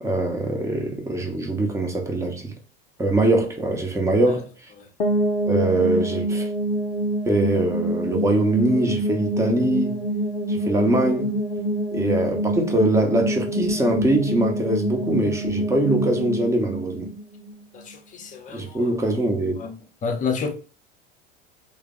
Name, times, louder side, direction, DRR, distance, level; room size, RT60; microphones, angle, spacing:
voice 1, 0.0-2.5 3.0-4.5 5.5-6.5 7.3-10.0 10.5-11.4 11.9-17.1 18.5-19.6, right 1 dB, 10° right, 0.8 m, -22 dB
sound 1, 5.0-17.9, right 1 dB, 85° left, 0.5 m, -26 dB
voice 2, 17.7-19.1 19.6-20.5, left 5 dB, 25° left, 0.7 m, -30 dB
3.3 x 2.1 x 3.7 m
figure-of-eight pair, 75°, 29 cm